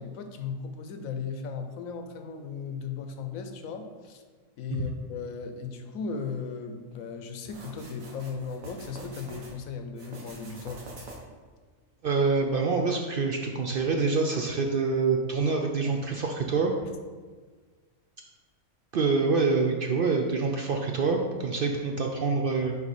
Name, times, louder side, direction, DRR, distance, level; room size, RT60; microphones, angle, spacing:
voice 1, 0.0-4.2 4.6-10.8, left 5 dB, 90° left, 6 dB, 1.1 m, -36 dB
sound 1, 7.5-9.5 9.9-11.4, right 2 dB, 85° right, 1.6 m, -45 dB
voice 2, 12.0-16.7 18.9-22.8, right 4 dB, 60° right, 2 dB, 0.6 m, -26 dB
6.8 x 4.2 x 4.2 m, 1.4 s
omnidirectional pair, 1.4 m